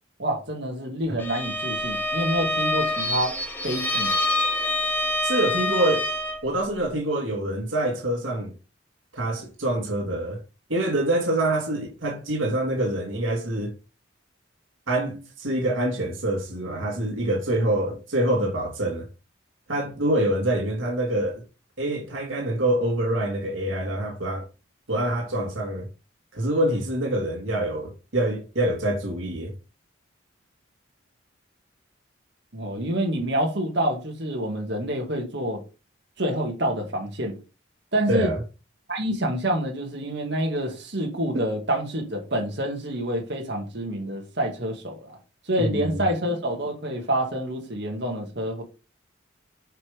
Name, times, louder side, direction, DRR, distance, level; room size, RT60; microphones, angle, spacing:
voice 1, 0.2-3.4 3.6-4.1 32.5-35.6 36.2-37.4 37.9-38.3 38.9-45.2 45.4-48.6, right 1 dB, 60° right, 2.1 m, -27 dB
Bowed string instrument, 1.2-6.5, left 1 dB, 10° left, 1.1 m, -26 dB
voice 2, 5.2-6.1 6.4-8.5 9.1-10.4 10.7-13.7 14.9-19.1 19.7-21.4 21.8-24.5 24.9-25.9 26.3-29.5 38.1-38.4 45.6-46.0, right 1 dB, 85° right, 1.9 m, -25 dB
7.6 x 4.9 x 3.5 m
head